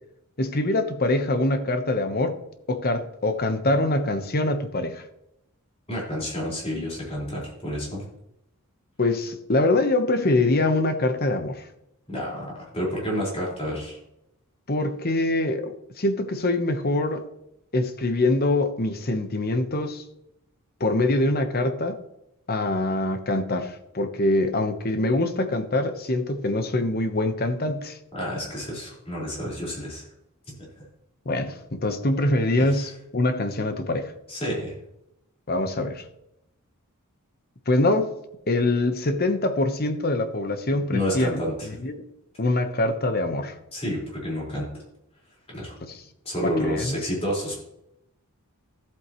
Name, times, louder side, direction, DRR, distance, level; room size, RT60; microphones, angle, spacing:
voice 1, 0.4-2.4 2.7-5.0 9.0-11.7 14.7-17.2 17.7-20.0 20.8-22.0 22.5-28.0 31.3-34.1 35.5-36.1 37.7-38.1 38.5-41.3 41.7-42.0 42.4-43.5 45.8-46.0 46.4-47.0, left 2 dB, 45° left, 8 dB, 1.0 m, -24 dB
voice 2, 5.9-8.0 12.1-14.0 28.1-30.0 32.7-32.9 34.3-34.7 40.9-41.7 43.7-44.7 45.5-45.7 46.2-47.6, equal, 25° left, -4 dB, 4.6 m, -29 dB
14.0 x 8.2 x 3.1 m, 0.82 s
head